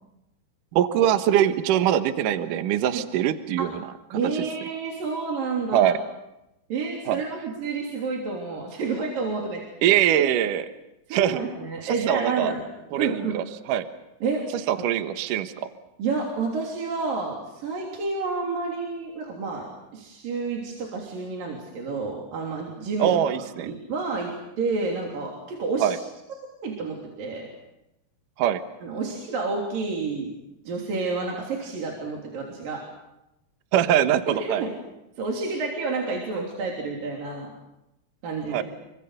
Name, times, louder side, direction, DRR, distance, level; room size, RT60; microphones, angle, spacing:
voice 1, 0.7-3.8 4.1-4.2 5.7-6.0 7.1-7.2 9.8-10.7 11.1-11.4 12.1-12.5 12.9-13.9 14.7-15.7 23.0-23.7 25.8-26.0 28.4-28.6 33.7-34.6 38.5-38.6, right 11 dB, 75° right, 9 dB, 2.0 m, -22 dB
voice 2, 4.1-5.9 6.7-9.6 10.2-10.3 11.1-12.6 13.0-13.4 14.2-14.4 14.8-14.9 16.0-23.1 23.6-25.9 26.6-27.5 28.8-30.3 30.6-32.8 34.3-34.7 35.2-37.5 38.2-38.6, right 4 dB, 50° right, -1 dB, 4.6 m, -29 dB
29.0 x 24.5 x 6.7 m, 0.93 s
omnidirectional pair, 5.7 m